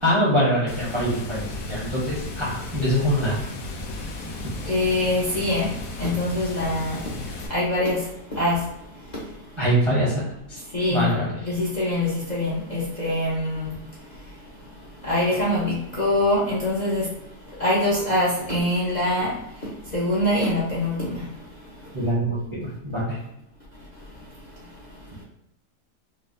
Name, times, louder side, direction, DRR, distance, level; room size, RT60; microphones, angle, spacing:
voice 1, 0.0-3.4 9.6-10.2 10.5-10.6 10.9-11.4 21.9-23.2, equal, 30° right, -6 dB, 0.6 m, -23 dB
Water, 0.7-7.5, left 2 dB, 70° left, 1.0 m, -35 dB
voice 2, 4.6-5.7 6.0-7.0 7.5-8.0 8.3-8.6 10.7-11.1 11.4-13.7 15.1-17.1 17.6-19.3 19.9-21.2, left 1 dB, 45° left, -7 dB, 0.5 m, -23 dB
4.4 x 2.0 x 2.5 m, 0.83 s
omnidirectional pair, 1.8 m